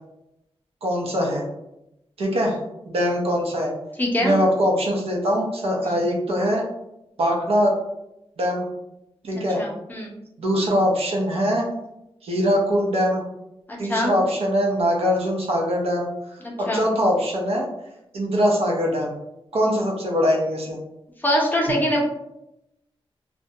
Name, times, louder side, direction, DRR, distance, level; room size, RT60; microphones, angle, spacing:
voice 1, 0.8-1.4 2.2-2.6 2.9-3.7 4.2-6.6 7.2-7.7 8.4-8.7 9.2-9.6 10.4-11.7 12.2-13.2 13.8-16.1 16.6-17.7 18.1-19.1 19.5-20.8, equal, 80° right, -1 dB, 0.6 m, -22 dB
voice 2, 4.0-4.4 5.8-6.0 9.3-10.1 13.7-14.1 16.4-16.8 21.2-22.0, left 1 dB, 20° left, -2 dB, 0.5 m, -24 dB
2.3 x 2.1 x 2.7 m, 0.88 s
wide cardioid pair, 160°, 10 cm